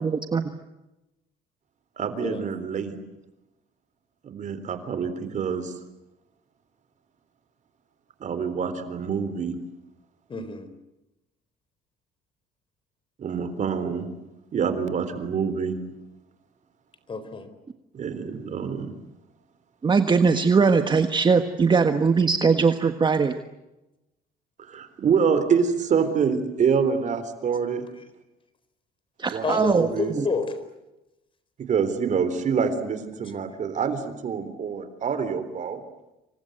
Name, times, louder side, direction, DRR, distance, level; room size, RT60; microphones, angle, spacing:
voice 1, 0.0-0.5 19.8-23.3 29.2-29.9 30.2-30.3, right 5 dB, 25° right, 8 dB, 1.5 m, -20 dB
voice 2, 2.0-3.0 4.2-5.7 8.2-9.6 13.2-14.1 14.5-15.8 17.9-18.9 24.6-27.8 29.3-30.1 31.6-35.8, right 6 dB, 45° right, 11 dB, 3.8 m, -26 dB
voice 3, 10.3-10.7 17.1-17.5 29.4-30.6 33.2-33.3, left 4 dB, 30° left, 12 dB, 4.4 m, -29 dB
27.5 x 25.5 x 8.0 m, 0.97 s
cardioid pair, 110°, 17 cm